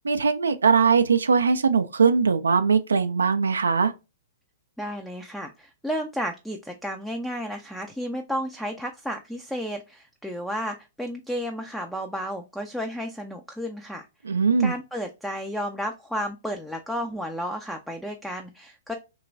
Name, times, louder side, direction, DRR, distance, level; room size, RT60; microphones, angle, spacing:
voice 1, 0.0-3.9 14.3-14.7, right 5 dB, 80° right, 0.3 m, -21 dB
voice 2, 4.8-14.1 14.6-18.9, equal, ahead, 0.4 m, -32 dB
3.0 x 2.9 x 2.6 m
hypercardioid pair, 115°, 0 cm